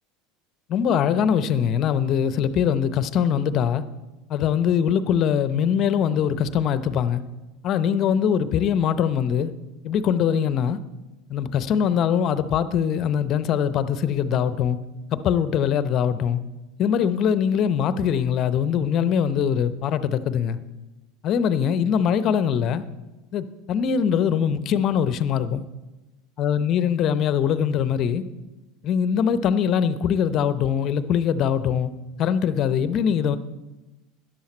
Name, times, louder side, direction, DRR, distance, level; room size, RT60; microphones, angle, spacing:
voice 1, 0.7-3.8 4.3-7.2 7.6-9.5 9.8-10.8 11.3-14.8 15.1-16.4 16.8-20.6 21.2-22.8 23.3-25.6 26.4-28.2 28.8-31.9 32.2-33.4, left 8 dB, 45° left, 14 dB, 0.7 m, -22 dB
13.0 x 10.0 x 4.4 m, 1.1 s
hypercardioid pair, 80°, 0 cm